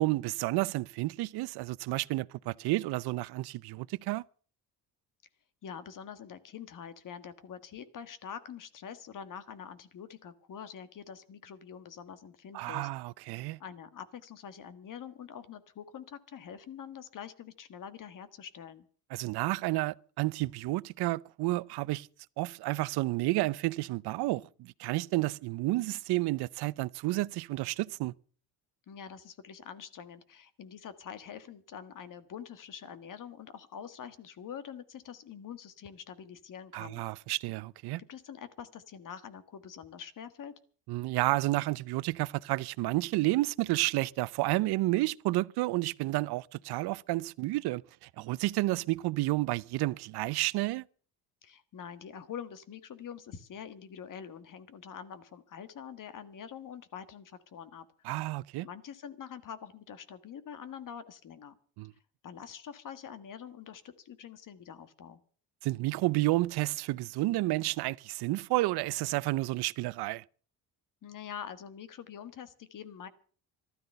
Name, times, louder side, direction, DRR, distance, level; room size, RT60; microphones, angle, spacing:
voice 1, 0.0-4.2 12.5-13.6 19.1-22.1 22.4-28.1 36.7-38.0 40.9-50.8 58.0-58.7 61.8-61.9 65.6-70.2, right 19 dB, 65° right, 0.6 m, -31 dB
voice 2, 5.6-12.9 13.6-18.8 28.9-37.0 38.1-40.5 51.4-57.9 58.6-61.6 62.2-65.2 71.0-73.1, left 8 dB, 50° left, 1.6 m, -45 dB
14.0 x 13.0 x 6.6 m
cardioid pair, 110°, 41 cm